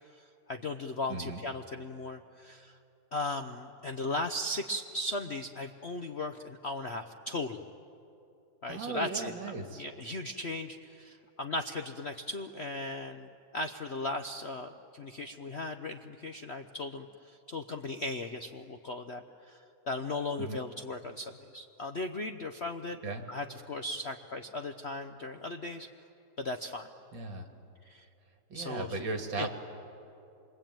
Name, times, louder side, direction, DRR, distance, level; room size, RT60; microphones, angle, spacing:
voice 1, 0.1-2.8 3.1-7.6 8.6-9.3 9.8-23.0 23.3-25.9 26.4-26.9 27.8-28.1 28.5-29.0 29.4-29.5, left 2 dB, 55° left, 6 dB, 0.7 m, -37 dB
voice 2, 1.1-1.4 8.7-9.8 20.4-20.6 23.0-23.2 27.1-27.5 28.5-29.5, right 3 dB, 70° right, 5 dB, 2.7 m, -37 dB
27.0 x 23.5 x 9.0 m, 2.7 s
omnidirectional pair, 2.2 m